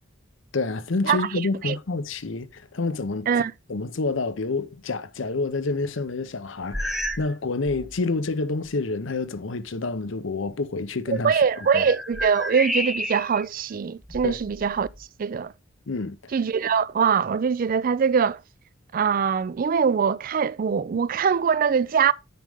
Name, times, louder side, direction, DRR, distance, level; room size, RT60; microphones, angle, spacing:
voice 1, 0.5-3.3 3.7-11.4 11.7-11.9 14.2-14.4 15.9-16.3, left 3 dB, 70° left, 0.7 m, -28 dB
sound 1, 6.7-7.4 7.6-8.0 8.7-8.8 11.1-13.5 14.0-15.0, equal, ahead, 0.7 m, -31 dB
voice 2, 11.2-14.9 15.2-15.5 16.3-18.4 18.9-22.1, right 6 dB, 45° right, 0.3 m, -22 dB
9.4 x 5.2 x 3.5 m
head